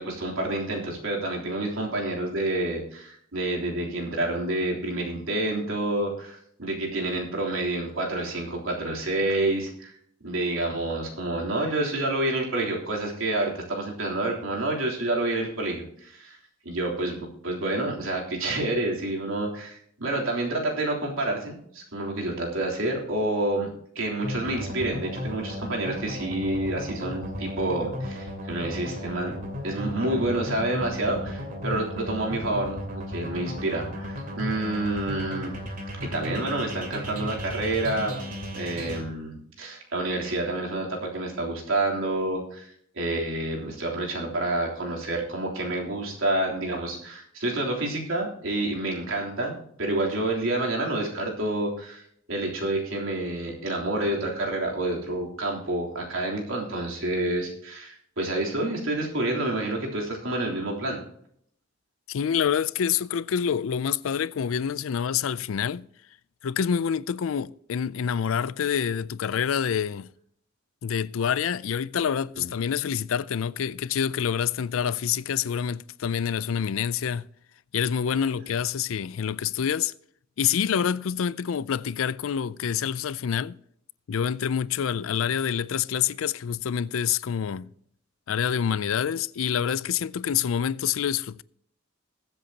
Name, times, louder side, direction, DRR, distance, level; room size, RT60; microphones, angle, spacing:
voice 1, 0.0-9.9 10.2-16.4 16.6-23.7 23.9-29.3 29.6-35.5 36.0-38.2 38.5-52.0 52.3-61.0 72.3-72.5, right 2 dB, 85° right, 3.4 m, -28 dB
sound 1, 24.2-39.0, left 1 dB, 45° right, 2.6 m, -35 dB
voice 2, 62.1-65.9 66.4-70.1 70.8-77.3 77.7-79.9 80.4-83.6 84.1-87.7 88.3-91.4, left 8 dB, 80° left, 0.4 m, -27 dB
21.5 x 7.9 x 2.9 m
head